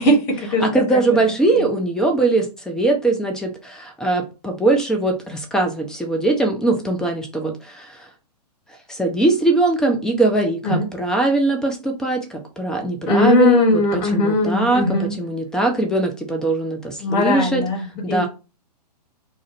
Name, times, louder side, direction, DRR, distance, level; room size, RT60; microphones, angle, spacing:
voice 1, 0.0-0.7 1.5-1.6 10.6-10.9 13.1-15.1 17.0-18.3, left 2 dB, 30° left, 1.2 m, -19 dB
voice 2, 0.6-8.1 8.9-17.6 18.0-18.3, right 2 dB, 5° left, 0.5 m, -21 dB
2.5 x 2.1 x 4.0 m
figure-of-eight pair, 120°, 21 cm